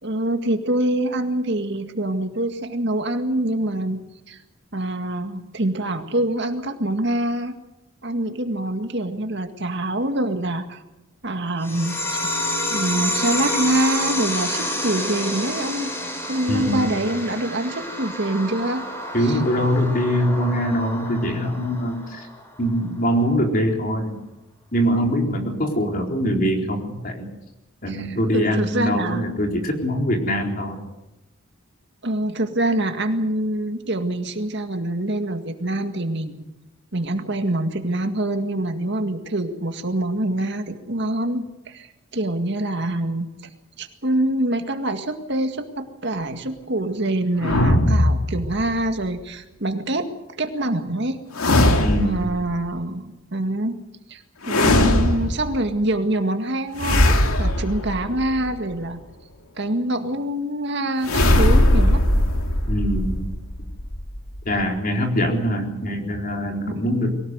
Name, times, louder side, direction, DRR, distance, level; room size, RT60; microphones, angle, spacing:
voice 1, 0.0-4.4 4.7-7.5 8.0-10.8 11.2-12.2 12.7-15.9 16.3-18.8 19.2-19.4 25.6-25.7 27.9-29.2 32.0-36.4 36.9-41.9 42.1-43.3 43.8-50.1 50.4-51.2 52.0-53.8 54.1-59.0 59.6-62.0 66.6-67.1, right 1 dB, 55° right, 6 dB, 2.0 m, -25 dB
sound 1, 11.6-22.6, left 1 dB, 10° left, 3.6 m, -29 dB
voice 2, 16.5-16.9 19.1-22.3 22.6-24.2 24.7-27.3 27.8-30.8 51.8-52.3 62.7-63.3 64.5-67.1, equal, 40° left, 2 dB, 4.2 m, -23 dB
sound 2, 47.4-48.9 51.3-52.4 54.4-55.6 56.8-58.6 61.0-64.6, left 1 dB, 85° left, 2.3 m, -19 dB
23.5 x 18.0 x 8.1 m, 0.95 s
head